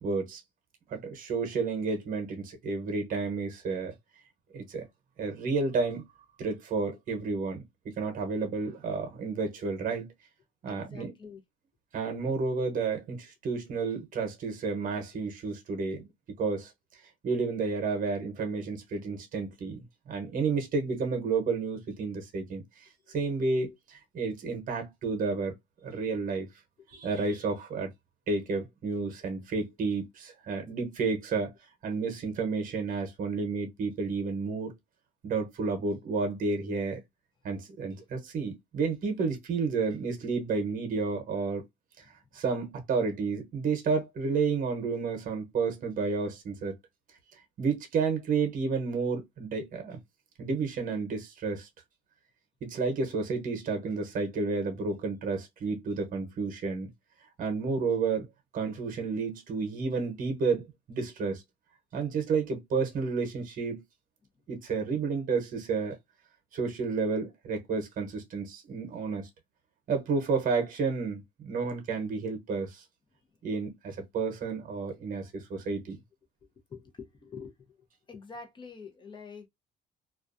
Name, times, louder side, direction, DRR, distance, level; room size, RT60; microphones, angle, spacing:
voice 1, 0.0-0.4 0.9-3.9 4.5-4.9 5.2-6.0 6.4-10.1 10.6-11.1 11.9-16.1 16.4-16.7 17.2-25.5 25.8-26.5 26.9-27.9 28.3-31.5 31.8-34.7 35.2-37.0 37.4-41.6 42.3-46.7 47.6-50.0 50.4-51.7 52.6-56.9 57.4-58.3 58.5-61.4 61.9-63.8 64.5-66.0 66.5-69.3 69.9-72.8 73.4-76.0, right 4 dB, 50° right, 0.9 m, -31 dB
voice 2, 10.7-11.4 76.7-77.5 78.1-79.5, left 5 dB, 30° left, 0.7 m, -45 dB
2.3 x 2.2 x 2.5 m
cardioid pair, 110°, 17 cm